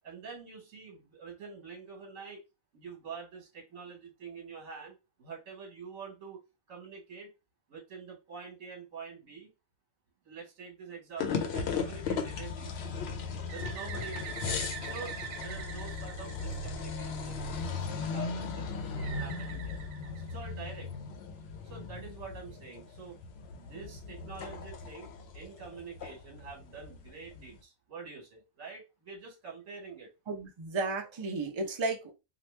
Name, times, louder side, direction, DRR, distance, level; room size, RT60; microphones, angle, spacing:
voice 1, 0.0-2.4 2.7-6.4 6.7-7.3 7.7-9.5 10.2-12.7 13.5-19.8 20.2-20.9 21.6-23.2 23.5-30.1, right 5 dB, 70° right, 1.4 m, -46 dB
sound 1, 11.2-27.6, left 5 dB, 65° left, 0.7 m, -37 dB
Bird, 13.5-17.2 19.0-20.8, right 7 dB, 85° right, 1.1 m, -44 dB
voice 2, 30.3-32.1, right 3 dB, 40° right, 0.4 m, -33 dB
2.9 x 2.3 x 3.2 m
omnidirectional pair, 1.4 m